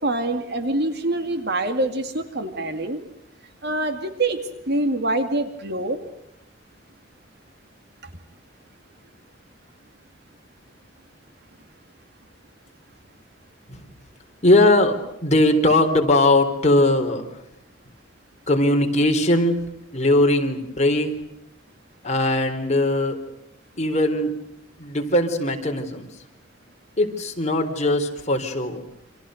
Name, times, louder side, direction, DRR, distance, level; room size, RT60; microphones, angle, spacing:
voice 1, 0.0-3.0 3.6-4.4 4.7-6.0, right 2 dB, 60° right, 8 dB, 2.3 m, -25 dB
voice 2, 14.4-17.3 18.5-19.6 19.9-21.2 22.0-23.2 23.8-24.4 24.8-26.1 27.0-28.8, left 1 dB, 35° left, 4 dB, 3.8 m, -20 dB
29.0 x 26.0 x 6.5 m, 0.82 s
head